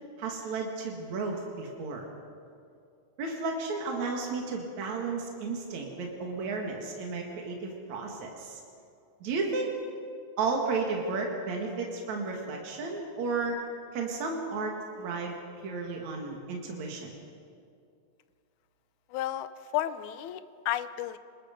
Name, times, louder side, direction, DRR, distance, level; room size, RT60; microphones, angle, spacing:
voice 1, 0.2-2.0 3.2-8.6 9.2-9.8 10.4-13.6 13.9-15.3 15.6-17.1, right 4 dB, 70° right, 0 dB, 3.3 m, -33 dB
voice 2, 19.1-21.2, left 13 dB, 80° left, 12 dB, 2.2 m, -33 dB
27.5 x 21.0 x 5.2 m, 2.4 s
omnidirectional pair, 3.5 m